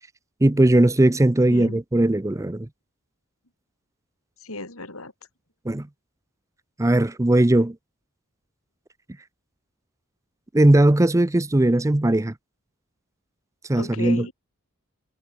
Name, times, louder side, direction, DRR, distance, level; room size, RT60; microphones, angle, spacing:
voice 1, 0.4-2.7 5.6-5.9 6.8-7.8 10.5-12.3 13.7-14.3, right 1 dB, 15° right, 0.6 m, -18 dB
voice 2, 4.4-5.1 13.7-14.3, left 2 dB, 70° left, 5.5 m, -34 dB
head